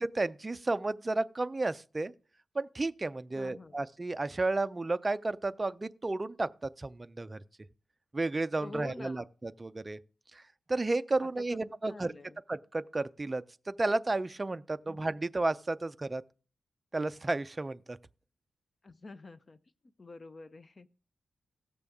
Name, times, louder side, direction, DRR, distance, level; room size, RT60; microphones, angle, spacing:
voice 1, 0.0-2.1 2.5-7.4 8.1-10.0 10.3-10.4 10.7-12.1 12.5-16.2 16.9-18.0, right 2 dB, 25° right, 0.4 m, -32 dB
voice 2, 3.4-3.8 8.6-9.3 11.2-11.6 11.8-12.4 14.9-15.0 18.8-19.6 20.0-20.9, left 2 dB, 35° left, 0.5 m, -47 dB
17.0 x 6.9 x 3.5 m
wide cardioid pair, 125°, 0 cm